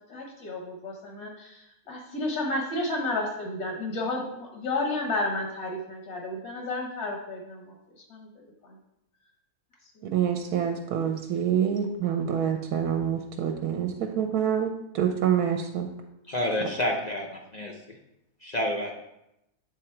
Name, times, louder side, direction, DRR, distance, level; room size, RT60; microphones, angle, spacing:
voice 1, 0.1-7.8 8.1-8.3 10.0-10.1, left 2 dB, 80° left, 0 dB, 1.6 m, -32 dB
voice 2, 10.0-15.9, right 8 dB, 75° right, 4 dB, 1.1 m, -27 dB
voice 3, 16.3-18.0 18.4-19.0, left 1 dB, 50° left, 0 dB, 0.5 m, -29 dB
8.2 x 3.8 x 4.4 m, 0.86 s
omnidirectional pair, 1.6 m